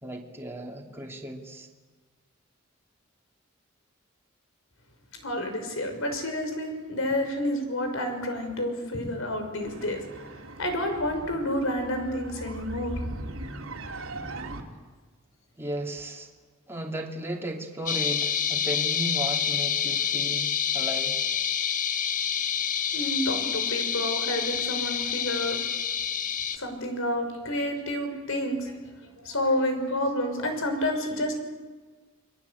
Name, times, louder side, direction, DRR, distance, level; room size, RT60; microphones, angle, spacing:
voice 1, 0.0-1.7 15.6-16.3 16.7-21.2, right 1 dB, 10° right, -1 dB, 2.9 m, -35 dB
voice 2, 5.1-13.0 22.9-25.6 26.6-28.8 29.2-31.4, left 1 dB, 70° left, 5 dB, 6.0 m, -29 dB
sound 1, 9.6-14.6, right 1 dB, 75° right, 3.1 m, -39 dB
sound 2, 17.9-26.6, left 8 dB, 40° left, 1.3 m, -28 dB
29.5 x 22.5 x 8.5 m, 1.4 s
head